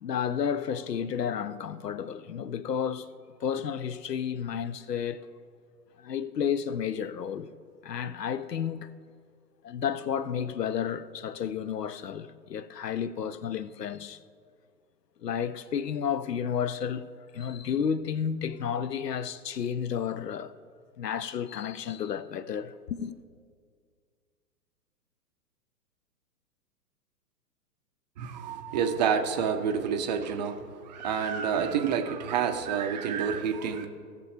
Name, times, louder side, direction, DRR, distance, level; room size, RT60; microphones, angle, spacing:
voice 1, 0.0-3.1 3.4-5.3 6.0-7.5 7.8-8.9 9.6-14.2 15.2-17.1 17.3-20.5 21.0-23.1, left 8 dB, 85° left, 0.6 m, -31 dB
voice 2, 28.2-33.9, right 7 dB, 30° right, 0.5 m, -28 dB
16.5 x 6.7 x 3.4 m
figure-of-eight pair, 115°, 47 cm